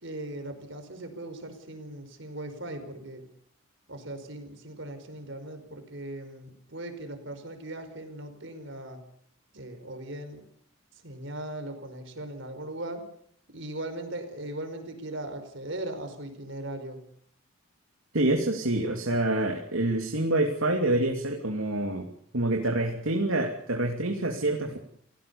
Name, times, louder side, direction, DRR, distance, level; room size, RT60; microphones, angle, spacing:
voice 1, 0.0-3.2 3.9-9.0 9.5-10.4 11.0-13.0 13.5-17.0, right 1 dB, 60° right, 7 dB, 5.0 m, -39 dB
voice 2, 18.1-22.1 22.3-24.8, right 2 dB, 75° right, 2 dB, 2.8 m, -27 dB
30.0 x 17.5 x 7.0 m, 0.65 s
head